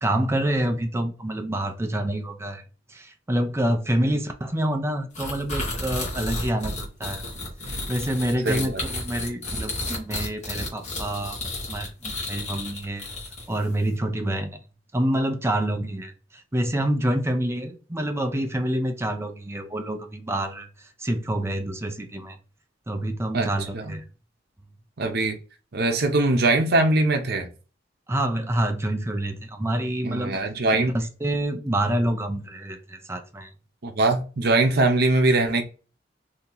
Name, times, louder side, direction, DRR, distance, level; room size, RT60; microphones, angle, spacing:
voice 1, 0.0-2.6 2.9-7.2 7.6-11.4 11.7-13.1 13.5-14.6 14.9-22.4 22.9-24.0 28.1-30.4 30.7-33.5, right 1 dB, 15° right, 0.5 m, -27 dB
sound 1, 5.1-13.6, left 2 dB, 40° left, 1.3 m, -32 dB
voice 2, 8.4-8.8 23.3-24.0 25.0-25.4 25.7-27.5 30.0-31.0 33.8-35.6, right 2 dB, 60° right, 0.7 m, -22 dB
2.8 x 2.8 x 3.7 m
head